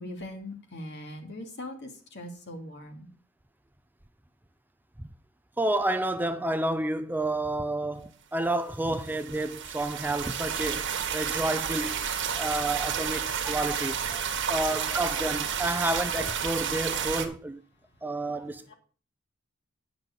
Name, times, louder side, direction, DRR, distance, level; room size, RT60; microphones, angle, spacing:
voice 1, 0.0-3.1 18.2-18.3, left 1 dB, 60° left, 2.4 m, -41 dB
voice 2, 5.6-12.0 12.4-14.2 14.5-17.6 18.0-18.7, right 1 dB, 10° right, 0.5 m, -30 dB
sound 1, 8.9-17.3, right 7 dB, 65° right, 1.5 m, -31 dB
9.5 x 6.1 x 6.7 m
head